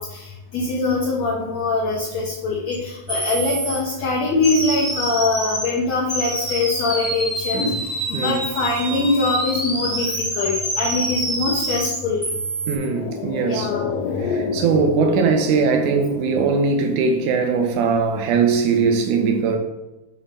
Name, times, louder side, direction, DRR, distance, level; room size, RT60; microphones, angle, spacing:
voice 1, 0.0-12.2 13.5-13.9, left 3 dB, 65° left, -3 dB, 1.8 m, -23 dB
sound 1, 2.7-2.8 3.1-3.8 4.4-5.7 6.1-12.8, right 1 dB, 20° right, 1.0 m, -26 dB
sound 2, 12.6-17.2 17.5-17.6, left 5 dB, 85° left, 1.7 m, -29 dB
voice 2, 12.7-13.7 14.2-19.6, right 5 dB, 75° right, 4 dB, 2.2 m, -20 dB
7.2 x 3.8 x 4.1 m, 1.0 s
omnidirectional pair, 3.8 m